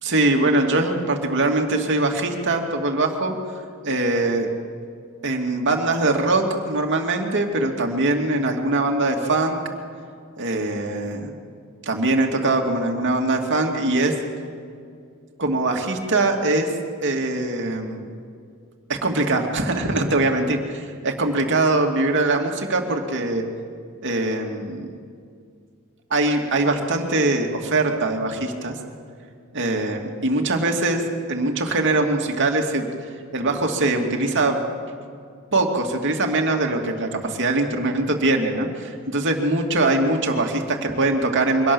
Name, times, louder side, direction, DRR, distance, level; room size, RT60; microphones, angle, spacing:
voice 1, 0.0-3.3 3.8-4.5 5.2-9.6 10.4-11.3 11.9-14.1 15.4-16.7 17.0-18.1 18.9-23.4 24.0-25.0 26.1-28.7 29.5-31.0 31.3-32.9 33.3-34.6 35.5-41.7, right 2 dB, 55° right, 2 dB, 2.5 m, -22 dB
24.0 x 18.5 x 7.1 m, 2.3 s
head